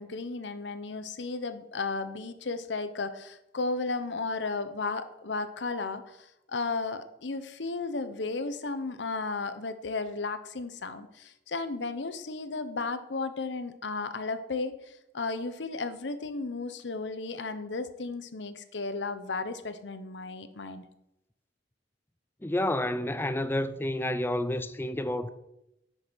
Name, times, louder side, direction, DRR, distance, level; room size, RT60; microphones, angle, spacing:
voice 1, 0.0-20.8, left 3 dB, 80° left, 0.9 m, -34 dB
voice 2, 22.4-25.3, left 1 dB, 10° left, 0.5 m, -29 dB
10.0 x 6.5 x 6.2 m
head